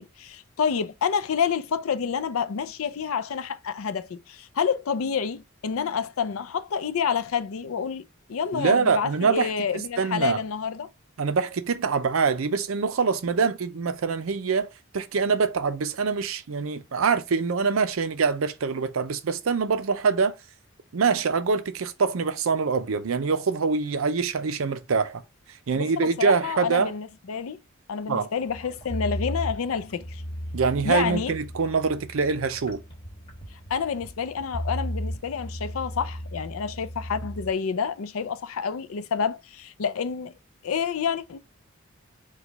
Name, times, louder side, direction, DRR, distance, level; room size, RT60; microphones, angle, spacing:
voice 1, 0.0-8.0 8.3-10.9 25.8-27.6 27.9-30.2 30.8-31.3 33.5-40.3 40.6-41.4, left 6 dB, 80° left, 0.5 m, -28 dB
voice 2, 8.5-9.5 10.0-10.4 11.2-14.7 14.9-20.3 20.9-25.2 25.7-26.9 28.1-28.3 30.5-32.8, right 5 dB, 80° right, 0.5 m, -24 dB
sound 1, 28.5-37.5, equal, 25° left, 1.2 m, -35 dB
4.9 x 2.3 x 4.0 m
head